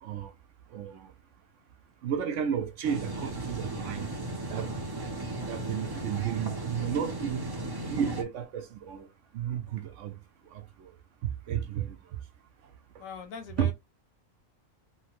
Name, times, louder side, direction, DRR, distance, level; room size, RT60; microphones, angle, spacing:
voice 1, 0.0-0.3 0.7-1.1 2.0-4.1 4.5-4.9 5.5-7.5 7.8-10.9 11.2-12.2 12.6-13.0 13.6-13.7, right 8 dB, 70° right, 0.9 m, -33 dB
sound 1, 2.8-8.2, right 2 dB, 35° right, 0.4 m, -36 dB
voice 2, 13.0-13.7, left 6 dB, 75° left, 1.1 m, -41 dB
3.0 x 2.1 x 2.9 m
omnidirectional pair, 1.4 m